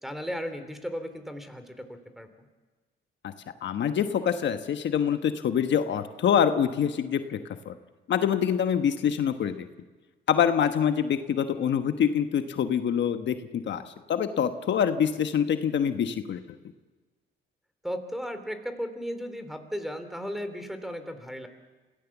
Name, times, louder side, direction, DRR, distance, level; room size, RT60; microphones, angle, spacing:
voice 1, 0.0-2.3 17.8-21.5, equal, ahead, 9 dB, 3.0 m, -35 dB
voice 2, 3.6-7.4 7.6-7.7 8.1-9.7 10.3-13.8 14.1-16.4, left 8 dB, 65° left, 8 dB, 1.2 m, -25 dB
26.5 x 17.0 x 7.2 m, 1.3 s
cardioid pair, 90°, 20 cm